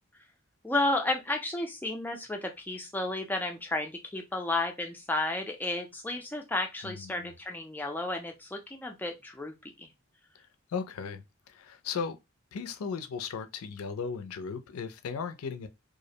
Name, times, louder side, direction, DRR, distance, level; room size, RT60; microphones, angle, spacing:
voice 1, 0.6-9.9, left 2 dB, 10° left, 0.3 m, -32 dB
voice 2, 6.8-7.3 10.7-12.2 12.5-15.7, left 6 dB, 80° left, 0.4 m, -36 dB
2.4 x 2.0 x 2.7 m
head